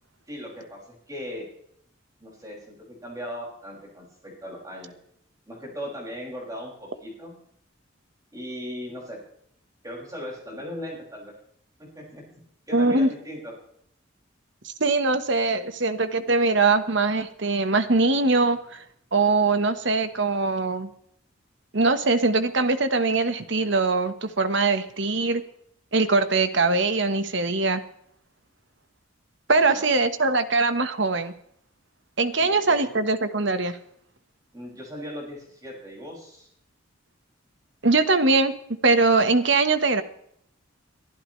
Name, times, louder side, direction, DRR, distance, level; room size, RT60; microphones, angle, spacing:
voice 1, 0.3-1.4 2.2-4.9 5.5-7.3 8.3-9.2 9.8-11.3 11.8-12.2 12.7-13.5 29.6-29.9 32.4-32.9 34.5-36.5, equal, 15° right, -2 dB, 6.1 m, -38 dB
voice 2, 12.7-13.1 14.6-18.8 19.1-20.9 21.7-25.4 25.9-27.8 29.5-31.3 32.2-33.8 37.8-38.5 38.8-40.0, right 3 dB, 60° right, 10 dB, 1.3 m, -22 dB
23.0 x 12.0 x 3.2 m, 0.69 s
head